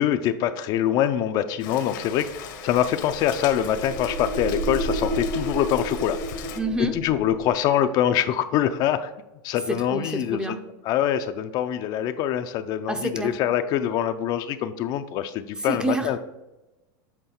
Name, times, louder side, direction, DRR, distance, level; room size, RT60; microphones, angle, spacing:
voice 1, 0.0-6.2 6.9-9.1 9.4-10.6 10.8-16.2, left 10 dB, 45° left, 0.4 m, -24 dB
Rain, 1.6-6.6, left 9 dB, 75° left, 1.0 m, -40 dB
sound 1, 2.6-7.6, right 1 dB, 50° right, 1.2 m, -31 dB
voice 2, 6.6-7.0 9.7-10.6 12.9-13.3 15.6-16.2, right 2 dB, 10° right, 0.5 m, -28 dB
7.9 x 3.8 x 4.3 m
supercardioid pair, 140°, 10 cm